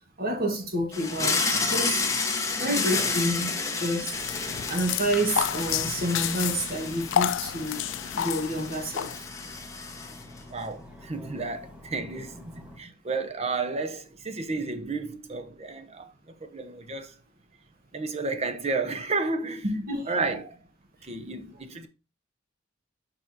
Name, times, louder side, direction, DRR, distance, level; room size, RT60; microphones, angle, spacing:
voice 1, 0.2-2.0 2.6-4.2 4.7-9.1 19.6-20.1, right 1 dB, 50° right, 1.6 m, -29 dB
sound 1, 0.9-10.4, left 4 dB, 15° left, 0.9 m, -31 dB
sound 2, 4.1-12.8, left 1 dB, 5° right, 1.3 m, -47 dB
sound 3, 4.2-9.2, left 10 dB, 65° left, 0.3 m, -30 dB
voice 2, 10.5-17.2 17.9-19.6 20.1-20.6 21.0-21.9, right 3 dB, 35° right, 0.7 m, -32 dB
6.5 x 5.2 x 2.8 m
head